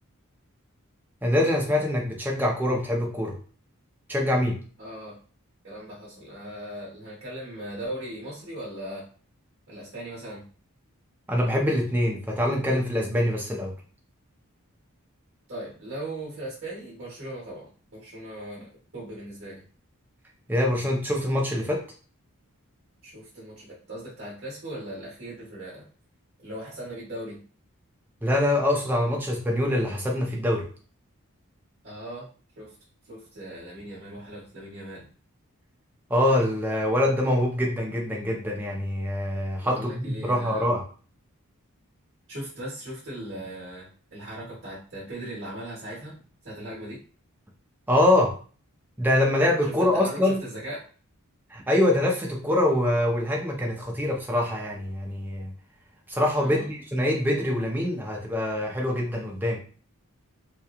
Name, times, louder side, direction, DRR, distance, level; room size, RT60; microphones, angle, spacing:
voice 1, 1.2-3.3 4.1-4.6 11.3-13.7 20.5-21.8 28.2-30.6 36.1-40.8 47.9-48.3 49.0-50.4 51.5-55.5 56.1-59.6, left 1 dB, 10° right, -1 dB, 0.5 m, -24 dB
voice 2, 4.8-5.2 5.6-9.1 9.7-10.4 15.5-19.6 23.0-25.8 26.4-27.4 31.8-32.3 32.6-32.7 33.0-35.1 39.6-40.7 42.3-46.1 46.4-47.0 49.6-50.8 56.3-56.7, right 1 dB, 55° right, -6 dB, 1.2 m, -38 dB
2.8 x 2.2 x 2.3 m, 0.40 s
head